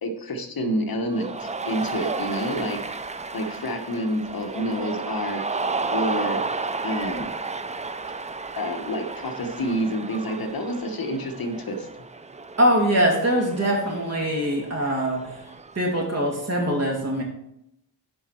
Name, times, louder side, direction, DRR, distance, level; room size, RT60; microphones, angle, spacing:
voice 1, 0.0-2.8 3.3-6.4 6.8-7.4 8.6-12.0, equal, 55° left, 4 dB, 1.2 m, -28 dB
Cheering, 1.1-15.9, right 3 dB, 20° right, 0.4 m, -33 dB
voice 2, 12.6-15.4 15.8-17.2, equal, 35° right, -1 dB, 2.5 m, -23 dB
10.5 x 5.4 x 4.4 m, 0.80 s
wide cardioid pair, 115°, 42 cm